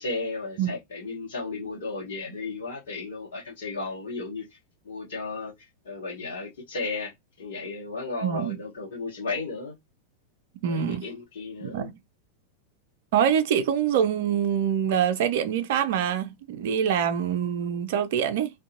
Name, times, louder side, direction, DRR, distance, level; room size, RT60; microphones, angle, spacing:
voice 1, 0.0-4.5 4.8-7.1 7.4-9.7 10.6-11.9, left 3 dB, 60° left, 0.9 m, -34 dB
voice 2, 8.2-8.6 10.6-11.0 11.6-11.9 13.1-18.5, right 8 dB, 50° right, 0.4 m, -25 dB
2.5 x 2.2 x 2.5 m
figure-of-eight pair, 90°, 0 cm